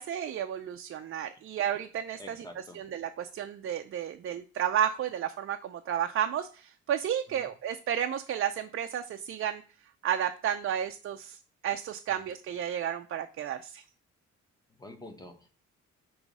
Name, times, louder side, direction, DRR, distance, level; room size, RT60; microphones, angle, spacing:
voice 1, 0.0-9.6 10.0-13.8, right 9 dB, 45° right, 6 dB, 0.5 m, -32 dB
voice 2, 2.2-2.8 7.3-7.5 14.8-15.5, left 1 dB, 15° left, 5 dB, 1.3 m, -47 dB
6.0 x 3.1 x 5.3 m, 0.38 s
cardioid pair, 90°, 30 cm